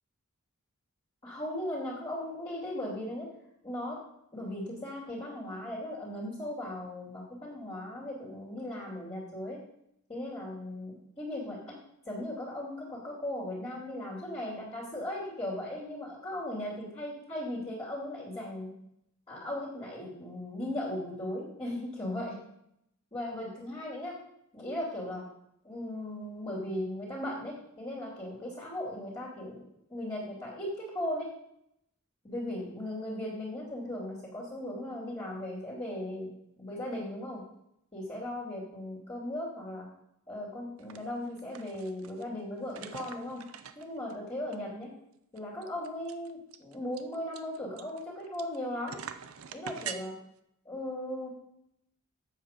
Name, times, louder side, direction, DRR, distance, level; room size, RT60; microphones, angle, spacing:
voice 1, 1.2-3.3 3.6-4.0 4.3-9.6 10.1-11.8 12.0-18.7 19.3-22.4 23.1-24.1 24.5-25.2 25.6-29.6 29.9-30.7 30.9-31.3 32.2-36.3 36.6-37.4 37.9-39.9 40.3-43.4 43.7-44.9 45.3-49.0 49.5-50.1 50.6-51.3, left 1 dB, 25° left, -8 dB, 2.9 m, -37 dB
sound 1, 40.8-41.0 41.3-42.2 42.7-44.1 44.5-44.6 44.8-44.9 45.4-48.6 48.9-50.0, right 8 dB, 75° right, 0.6 m, -43 dB
8.2 x 7.4 x 5.2 m, 0.78 s
head